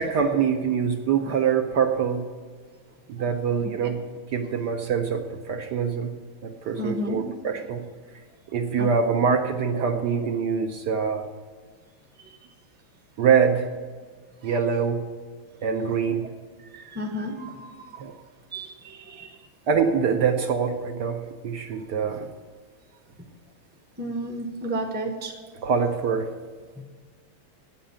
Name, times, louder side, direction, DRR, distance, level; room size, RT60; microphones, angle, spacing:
voice 1, 0.0-2.3 3.1-4.0 4.3-6.1 6.4-7.9 8.5-11.3 13.2-13.7 14.4-15.1 15.6-16.3 18.0-18.1 19.7-22.3 25.6-26.3, right 6 dB, 65° right, 4 dB, 1.2 m, -24 dB
voice 2, 6.8-7.2 8.8-9.2 16.7-18.0 18.5-19.4 23.2-23.3 24.0-25.5 26.8-26.9, equal, 10° right, 3 dB, 0.6 m, -32 dB
9.2 x 7.6 x 8.7 m, 1.5 s
omnidirectional pair, 2.3 m